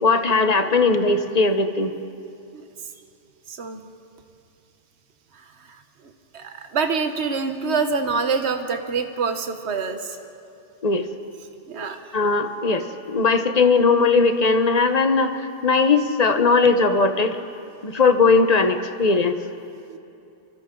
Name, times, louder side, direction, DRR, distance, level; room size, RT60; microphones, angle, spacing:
voice 1, 0.0-1.9 10.8-11.1 12.1-17.4 17.8-19.4, left 4 dB, 35° left, 7 dB, 1.2 m, -19 dB
voice 2, 3.5-3.8 5.3-5.8 6.0-10.2 11.7-12.2 19.9-20.0, right 5 dB, 70° right, 6 dB, 1.4 m, -26 dB
29.0 x 24.0 x 3.9 m, 2.7 s
omnidirectional pair, 1.2 m